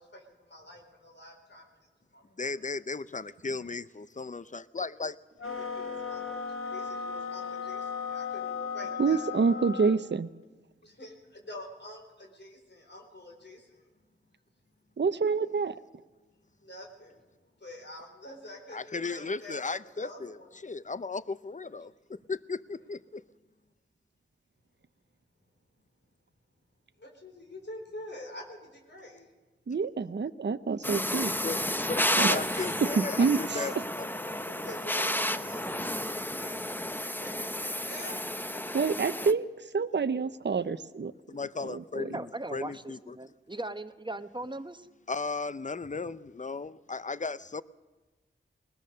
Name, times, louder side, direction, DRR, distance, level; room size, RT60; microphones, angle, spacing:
voice 1, 0.0-1.6 2.1-2.6 5.4-9.4 10.8-13.9 16.6-20.5 27.0-29.3 34.5-38.1, left 1 dB, 60° left, 4.2 m, -47 dB
voice 2, 2.4-5.2 18.7-23.2 31.4-34.1 41.3-43.2 45.1-47.6, left 4 dB, 35° left, 0.7 m, -36 dB
sound 1, 5.4-10.0, left 6 dB, 90° left, 1.6 m, -36 dB
voice 3, 9.0-10.3 15.0-15.8 29.7-31.3 32.2-32.4 33.0-33.6 38.7-39.5 39.7-41.1 41.7-42.1, right 5 dB, 60° right, 0.7 m, -27 dB
sound 2, 30.8-39.3, left 1 dB, 10° left, 0.9 m, -31 dB
voice 4, 42.1-44.9, right 2 dB, 20° right, 1.0 m, -39 dB
20.5 x 20.0 x 6.6 m
wide cardioid pair, 45°, 21 cm